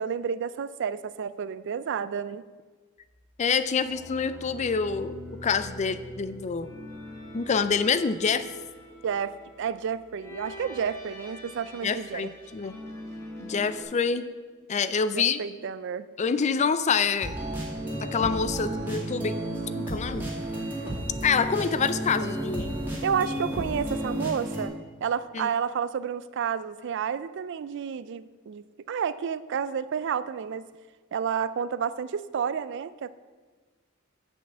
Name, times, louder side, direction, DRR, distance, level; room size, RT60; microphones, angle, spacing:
voice 1, 0.0-2.4 9.0-12.3 15.1-16.1 23.0-24.7 25.0-30.7 31.1-33.1, right 7 dB, 60° right, 15 dB, 0.4 m, -30 dB
voice 2, 3.4-5.1 5.4-6.7 7.3-8.5 11.8-12.8 13.4-14.3 14.7-15.4 16.2-17.4 18.0-19.4 19.8-20.3 21.2-22.8 25.3-25.5, left 5 dB, 35° left, 13 dB, 0.4 m, -26 dB
sound 1, 3.8-13.8, left 1 dB, 15° left, 1.6 m, -44 dB
sound 2, 17.2-24.6, right 1 dB, 10° right, 2.1 m, -32 dB
7.1 x 5.8 x 7.4 m, 1.4 s
head